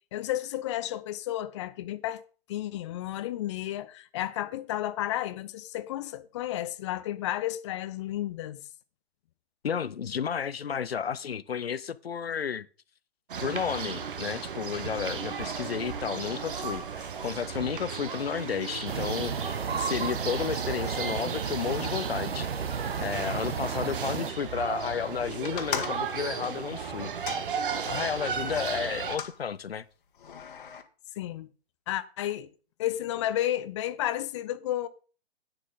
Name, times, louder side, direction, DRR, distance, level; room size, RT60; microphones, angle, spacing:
voice 1, 0.1-2.2 2.5-8.6 17.6-17.7 31.2-31.5 31.9-32.5 32.8-34.9, left 13 dB, 30° left, 0.6 m, -32 dB
voice 2, 9.6-12.7 13.4-22.5 23.0-27.1 27.8-29.8, left 7 dB, 70° left, 0.6 m, -32 dB
sound 1, 13.3-29.2, right 6 dB, 55° right, 1.5 m, -35 dB
sound 2, 18.9-24.3, right 6 dB, 75° right, 0.8 m, -33 dB
sound 3, 25.4-28.2 28.8-29.4 30.2-30.8, left 7 dB, 55° left, 1.5 m, -38 dB
10.0 x 9.1 x 3.9 m
figure-of-eight pair, 125°, 31 cm